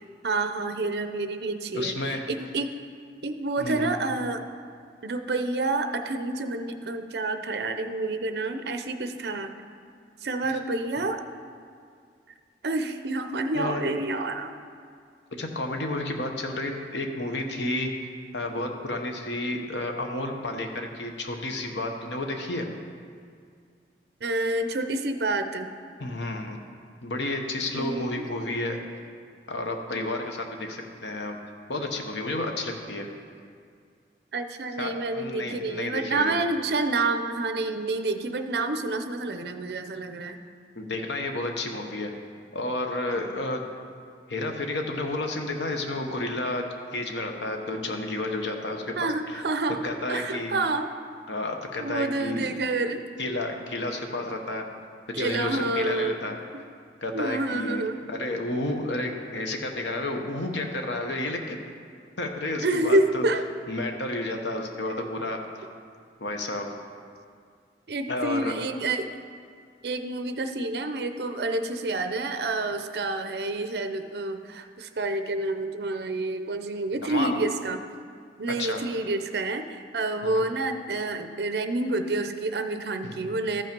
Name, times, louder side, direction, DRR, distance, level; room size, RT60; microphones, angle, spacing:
voice 1, 0.2-2.7 3.2-4.4 5.0-9.5 10.2-11.2 12.6-14.5 24.2-25.7 27.7-28.2 34.3-40.4 49.0-49.8 50.1-50.9 51.8-53.1 55.1-56.2 57.1-58.0 62.6-63.4 67.9-69.1 69.8-77.8 78.4-83.6, right 2 dB, 65° right, 8 dB, 0.6 m, -28 dB
voice 2, 1.7-2.3 3.6-3.9 13.5-13.9 15.4-17.9 18.3-22.7 26.0-26.6 27.0-28.8 29.5-31.4 31.7-33.1 34.8-36.3 40.8-42.1 42.5-43.6 44.3-49.0 49.3-49.4 49.8-50.6 51.3-52.5 53.2-54.7 55.1-56.4 57.0-61.6 62.2-63.2 63.7-65.4 66.2-66.7 68.1-68.5 77.0-77.4 78.6-78.8 80.2-80.4 83.0-83.3, left 2 dB, 85° left, 3 dB, 1.0 m, -31 dB
13.5 x 5.5 x 5.3 m, 2.2 s
head